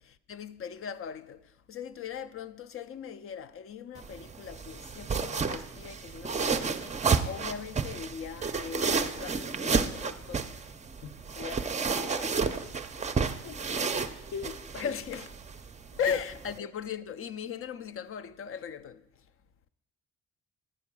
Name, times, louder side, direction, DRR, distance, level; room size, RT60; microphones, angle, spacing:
voice 1, 0.3-7.0 7.2-10.6 11.1-12.7 14.7-15.3 16.0-19.0, left 7 dB, 45° left, 0.5 m, -39 dB
sound 1, 4.0-16.6, right 5 dB, 25° right, 0.5 m, -31 dB
voice 2, 13.2-14.0 14.3-14.9 16.1-16.2, left 6 dB, 70° left, 0.9 m, -41 dB
9.8 x 4.6 x 6.0 m
cardioid pair, 90°, 30 cm